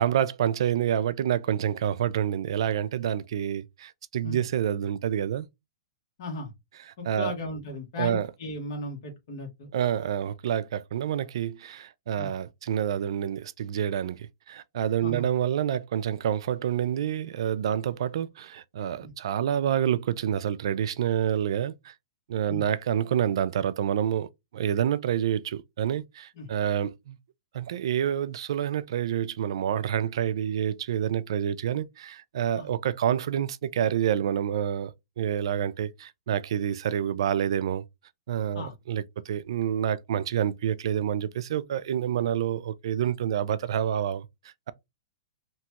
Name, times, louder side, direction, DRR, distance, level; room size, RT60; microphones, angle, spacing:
voice 1, 0.0-5.5 6.9-7.3 8.0-8.3 9.7-21.9 22.3-27.2 27.5-37.8 38.3-44.7, right 9 dB, 70° right, 0.3 m, -28 dB
voice 2, 6.2-6.5 7.0-9.7 12.2-12.3 15.0-15.3 19.0-19.1 22.5-22.6 26.4-26.5 32.5-32.7 38.5-38.7, left 1 dB, 55° left, 1.2 m, -36 dB
2.9 x 2.3 x 2.9 m
hypercardioid pair, 150°, 3 cm